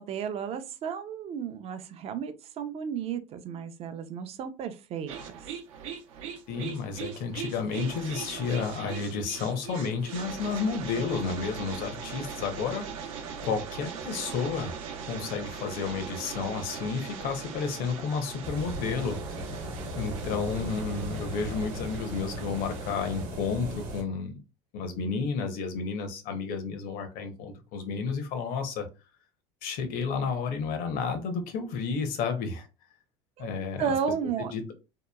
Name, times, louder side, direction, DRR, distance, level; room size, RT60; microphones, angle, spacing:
voice 1, 0.0-5.1 33.4-33.5 33.8-34.5, right 7 dB, 40° right, 9 dB, 0.5 m, -33 dB
sound 1, 5.1-23.3, right 6 dB, 80° right, 0.7 m, -40 dB
voice 2, 6.5-14.7 15.1-19.7 20.0-24.4 24.7-28.9 29.6-32.7 33.4-33.9 34.4-34.7, left 5 dB, 60° left, 6 dB, 0.7 m, -31 dB
sound 2, 18.4-24.0, right 1 dB, 55° right, 1.0 m, -37 dB
2.9 x 2.2 x 2.2 m, 0.29 s
supercardioid pair, 110°, 17 cm